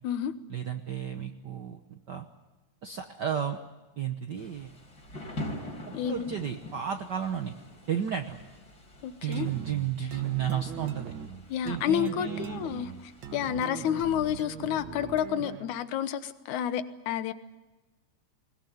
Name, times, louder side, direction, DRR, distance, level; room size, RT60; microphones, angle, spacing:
voice 1, 0.5-2.2 2.8-3.6 4.0-4.7 5.9-7.5 7.9-8.4 9.2-11.1 11.6-12.6, right 9 dB, 90° right, 6 dB, 0.9 m, -33 dB
Thunder / Rain, 4.4-13.4, left 1 dB, 30° left, 4.8 m, -44 dB
voice 2, 5.9-6.4 9.0-9.5 11.5-12.9 13.3-17.3, left 10 dB, 75° left, 12 dB, 2.5 m, -30 dB
sound 1, 9.3-15.8, right 7 dB, 55° right, 1.5 m, -41 dB
21.0 x 21.0 x 9.2 m, 1.1 s
omnidirectional pair, 3.5 m